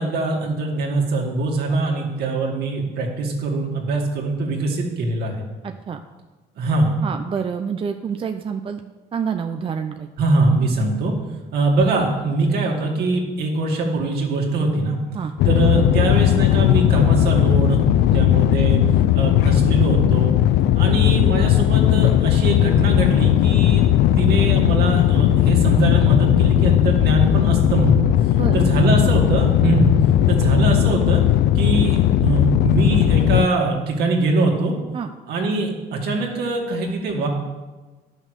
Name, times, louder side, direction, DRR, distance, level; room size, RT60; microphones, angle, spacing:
voice 1, 0.0-5.5 6.6-6.9 10.2-11.1 11.5-15.0 15.5-17.8 18.1-18.8 19.1-20.3 20.8-23.9 24.2-28.1 28.5-29.9 30.3-31.2 31.5-34.8 35.3-37.3, right 3 dB, 70° right, 0 dB, 2.3 m, -22 dB
voice 2, 5.6-6.0 7.0-8.8 9.1-10.1 15.1-15.3 18.1-18.3 20.8-20.9 28.3-28.6 34.9-35.1, right 6 dB, 30° right, 6 dB, 0.6 m, -27 dB
sound 1, 15.4-33.5, left 13 dB, 80° left, 0.5 m, -17 dB
11.0 x 6.3 x 6.6 m, 1.2 s
cardioid pair, 110°, 17 cm